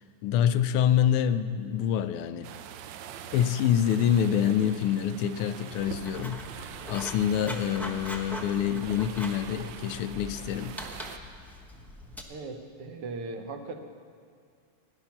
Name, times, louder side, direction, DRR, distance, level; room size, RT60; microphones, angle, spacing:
voice 1, 0.0-2.5 3.3-10.8, left 9 dB, 80° left, 12 dB, 1.5 m, -26 dB
sound 1, 2.4-11.2, right 9 dB, 75° right, 1.1 m, -44 dB
Writing, 5.7-12.2, left 1 dB, ahead, 0.6 m, -42 dB
voice 2, 12.3-13.8, right 3 dB, 90° right, 5 dB, 2.1 m, -38 dB
16.5 x 11.0 x 5.9 m, 2.2 s
omnidirectional pair, 2.4 m